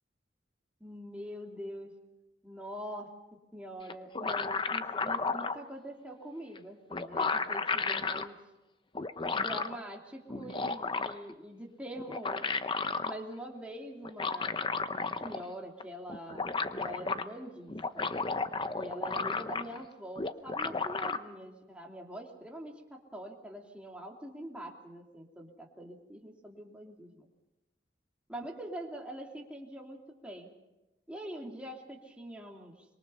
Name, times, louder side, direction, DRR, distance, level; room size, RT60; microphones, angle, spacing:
voice 1, 0.8-1.9 2.4-8.4 9.3-12.5 13.0-18.1 18.7-27.3 28.3-30.5 31.1-32.9, equal, 5° right, -1 dB, 2.7 m, -44 dB
sound 1, 3.9-5.6 6.6-6.7 6.9-8.3 8.9-9.8 10.3-11.3 12.0-13.2 14.0-15.5 15.8-15.9 16.1-17.2 17.7-19.8 20.2-21.2, left 4 dB, 25° left, 0.8 m, -33 dB
25.5 x 23.0 x 5.6 m, 1.0 s
head